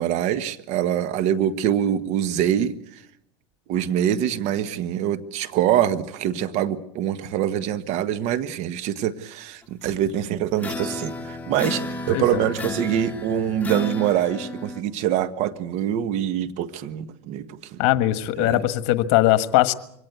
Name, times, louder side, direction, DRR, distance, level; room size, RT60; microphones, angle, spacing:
voice 1, 0.0-2.7 3.7-17.8 18.4-18.6, right 10 dB, 55° right, 12 dB, 1.5 m, -24 dB
sound 1, 10.6-14.8, left 3 dB, 10° left, 2.4 m, -33 dB
voice 2, 12.1-12.4 17.8-19.7, left 15 dB, 60° left, 12 dB, 1.5 m, -20 dB
23.5 x 18.0 x 8.2 m, 0.74 s
supercardioid pair, 110°, 14 cm